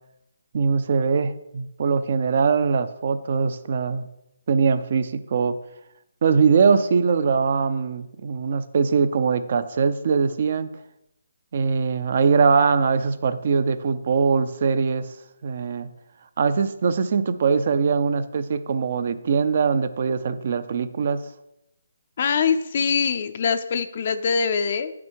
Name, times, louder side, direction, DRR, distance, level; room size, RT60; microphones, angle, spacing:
voice 1, 0.5-4.1 4.5-5.6 6.2-10.7 11.5-15.1 15.4-15.9 16.4-21.3, right 5 dB, 45° right, 13 dB, 0.6 m, -22 dB
voice 2, 22.2-24.9, left 6 dB, 45° left, 8 dB, 0.5 m, -23 dB
9.4 x 6.0 x 4.6 m, 0.86 s
hypercardioid pair, 160°, 0 cm